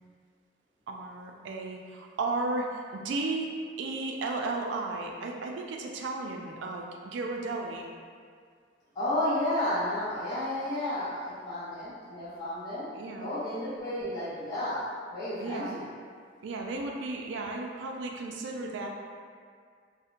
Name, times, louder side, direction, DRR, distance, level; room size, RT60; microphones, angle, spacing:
voice 1, 0.9-3.5 3.8-7.9 12.9-13.3 15.4-15.8 16.4-18.9, right 3 dB, 70° right, 1 dB, 0.3 m, -34 dB
voice 2, 8.9-12.9 13.2-15.9, left 1 dB, 25° left, -12 dB, 0.9 m, -32 dB
2.8 x 2.0 x 2.5 m, 2.1 s
head